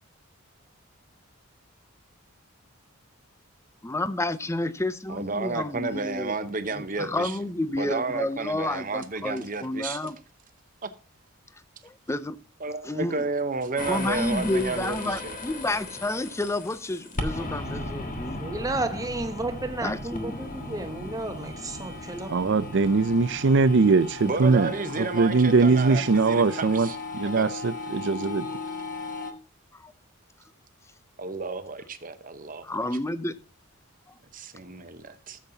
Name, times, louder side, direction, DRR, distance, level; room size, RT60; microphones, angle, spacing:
voice 1, 3.8-6.3 6.7-10.2 11.8-12.4 12.8-13.2 13.8-18.4 19.8-20.3 28.5-28.6 29.7-29.9 32.6-33.3, left 2 dB, 15° left, 0.5 m, -30 dB
voice 2, 5.1-7.4 7.8-10.0 10.8-10.9 12.6-15.4 24.2-27.0 27.4-27.5 31.2-32.8 34.3-35.4, right 3 dB, 40° right, 0.9 m, -32 dB
sound 1, 13.8-29.3, left 2 dB, 40° left, 1.4 m, -36 dB
voice 3, 18.4-22.9, right 2 dB, 15° right, 1.0 m, -33 dB
voice 4, 22.3-24.7 25.0-28.5, right 4 dB, 55° right, 0.5 m, -21 dB
14.5 x 7.3 x 2.8 m
head